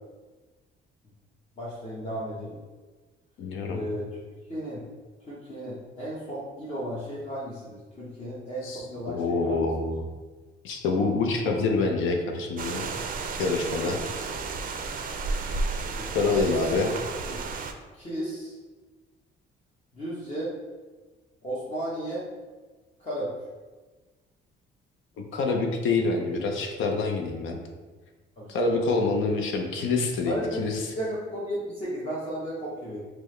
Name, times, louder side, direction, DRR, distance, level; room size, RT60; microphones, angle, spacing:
voice 1, 1.6-2.6 3.7-4.1 4.5-4.8 5.3-9.7 15.8-16.7 17.2-17.4 17.9-18.6 19.9-20.5 21.4-22.3 23.0-23.3 28.4-29.0 30.3-30.6 31.0-33.1, right 1 dB, 30° left, -7 dB, 0.9 m, -34 dB
voice 2, 3.4-3.8 8.6-10.0 10.6-12.9 13.4-14.0 16.1-16.9 25.2-27.6 28.5-30.8, left 3 dB, 80° left, 2 dB, 0.6 m, -26 dB
sound 1, 12.6-17.7, right 4 dB, 45° right, 0.4 m, -32 dB
4.5 x 2.1 x 3.1 m, 1.3 s
cardioid pair, 90°, 20 cm